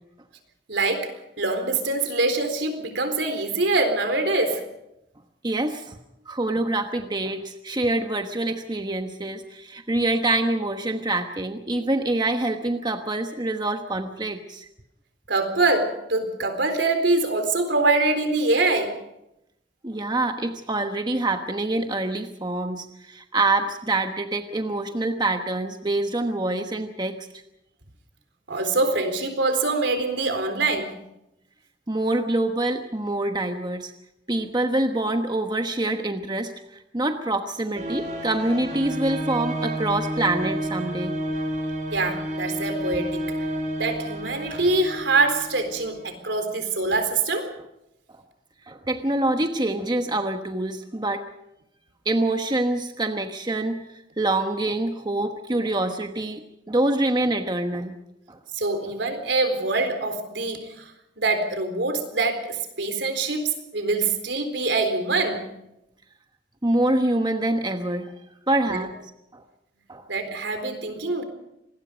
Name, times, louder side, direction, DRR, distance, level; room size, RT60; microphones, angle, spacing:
voice 1, 0.7-4.6 15.3-19.0 28.5-30.9 41.9-43.2 43.8-47.5 58.5-60.9 61.2-65.5 68.7-68.8 70.1-71.2, right 3 dB, 75° right, 8 dB, 4.0 m, -24 dB
voice 2, 5.4-6.0 6.3-14.7 19.8-27.3 31.9-33.9 34.3-41.1 48.7-51.3 52.0-53.8 54.2-57.9 58.3-58.4 66.6-68.1 68.5-68.9 69.3-69.4 69.9-70.0, right 2 dB, 25° right, 6 dB, 1.2 m, -25 dB
sound 1, 37.7-46.1, equal, 45° right, 5.3 m, -30 dB
26.0 x 20.5 x 5.2 m, 0.85 s
head